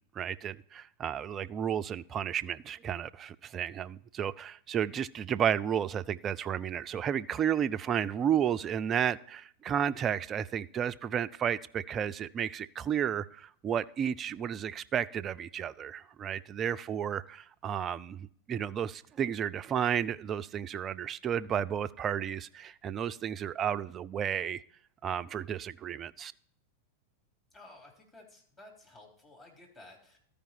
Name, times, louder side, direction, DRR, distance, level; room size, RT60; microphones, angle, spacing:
voice 1, 0.0-24.6 25.0-26.3, right 9 dB, 25° right, 16 dB, 0.3 m, -32 dB
voice 2, 27.5-30.2, left 2 dB, 25° left, -2 dB, 3.5 m, -54 dB
13.0 x 5.1 x 4.4 m, 0.63 s
figure-of-eight pair, 90°, 0 cm